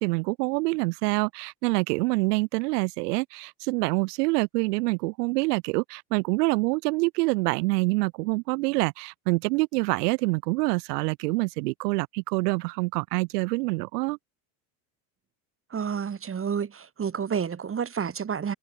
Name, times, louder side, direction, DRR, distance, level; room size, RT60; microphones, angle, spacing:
voice 1, 0.0-14.2, right 26 dB, 85° right, 1.4 m, -26 dB
voice 2, 15.7-18.5, right 7 dB, 25° right, 3.5 m, -30 dB
supercardioid pair, 110°, 47 cm